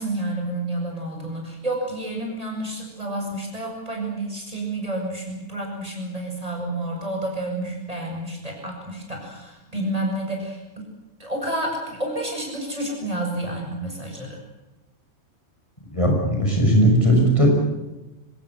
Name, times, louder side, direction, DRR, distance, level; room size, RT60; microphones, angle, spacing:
voice 1, 0.0-10.8 11.2-14.4, right 1 dB, 30° right, 0 dB, 7.7 m, -30 dB
voice 2, 15.9-17.5, equal, 25° left, 0 dB, 5.7 m, -17 dB
25.0 x 20.0 x 8.2 m, 1.0 s
omnidirectional pair, 1.3 m